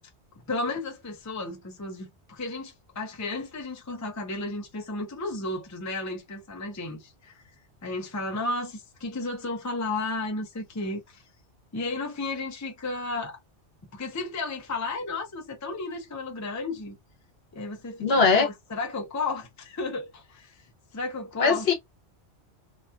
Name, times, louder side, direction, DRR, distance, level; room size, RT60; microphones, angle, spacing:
voice 1, 0.4-7.4 7.8-11.2 11.7-13.4 13.9-17.0 17.5-20.6 20.9-21.7, left 2 dB, 20° left, 0.5 m, -33 dB
voice 2, 18.0-18.5 21.4-21.7, left 4 dB, 60° left, 1.0 m, -20 dB
2.9 x 2.3 x 2.3 m
omnidirectional pair, 1.2 m